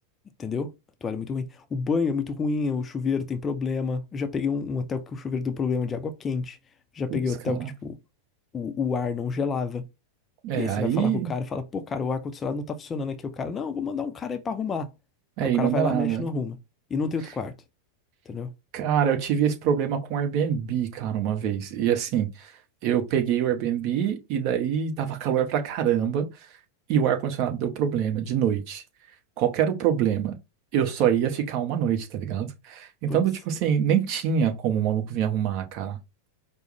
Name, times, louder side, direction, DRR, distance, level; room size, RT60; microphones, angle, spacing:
voice 1, 0.4-0.7 1.0-6.6 6.9-8.0 8.5-9.8 10.5-14.9 15.4-16.6 16.9-17.5 18.3-18.5 33.1-33.2, left 5 dB, 20° left, 0.4 m, -29 dB
voice 2, 10.4-11.3 15.4-16.2 18.7-22.5 22.8-26.3 26.9-28.8 29.4-30.4 30.7-36.0, right 9 dB, 45° right, 0.8 m, -25 dB
4.7 x 2.0 x 3.2 m
figure-of-eight pair, 90°, 0 cm